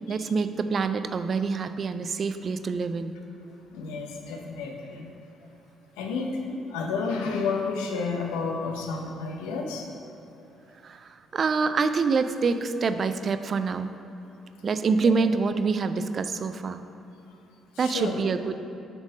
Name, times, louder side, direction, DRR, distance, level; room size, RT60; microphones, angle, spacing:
voice 1, 0.1-3.1 10.8-13.9 14.6-16.8 17.8-18.5, right 4 dB, 50° right, 10 dB, 0.3 m, -26 dB
voice 2, 3.3-5.1 6.0-9.9 12.6-12.7 17.8-18.1, left 4 dB, 90° left, 2 dB, 0.7 m, -31 dB
7.3 x 3.5 x 5.3 m, 2.9 s
supercardioid pair, 65°, 0 cm